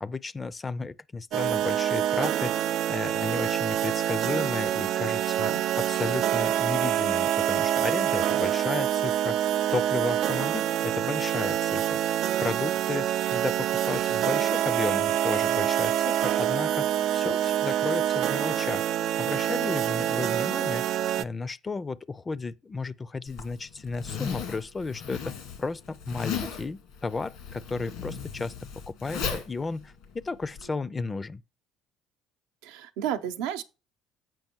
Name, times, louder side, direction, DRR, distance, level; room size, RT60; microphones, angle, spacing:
voice 1, 0.0-12.0 12.4-18.9 19.2-25.3 25.6-28.5 28.9-31.4, left 3 dB, 25° left, 0.4 m, -34 dB
sound 1, 1.3-21.2, right 11 dB, 65° right, 0.3 m, -26 dB
Zipper (clothing), 23.3-30.7, left 7 dB, 80° left, 1.8 m, -36 dB
voice 2, 32.6-33.6, right 10 dB, 85° right, 0.7 m, -32 dB
7.6 x 5.1 x 4.5 m
supercardioid pair, 75°, 0 cm